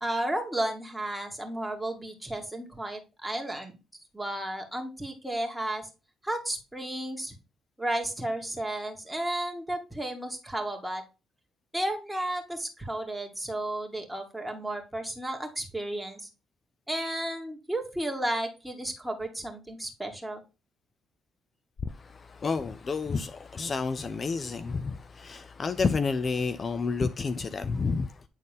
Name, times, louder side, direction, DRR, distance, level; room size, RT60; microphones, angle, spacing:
voice 1, 0.0-3.8 4.1-5.9 6.2-7.3 7.8-11.0 11.7-16.3 16.9-20.4, right 1 dB, 5° right, 2.1 m, -33 dB
voice 2, 21.8-28.2, left 4 dB, 40° left, 0.5 m, -30 dB
9.2 x 4.1 x 3.6 m
cardioid pair, 90°, 0 cm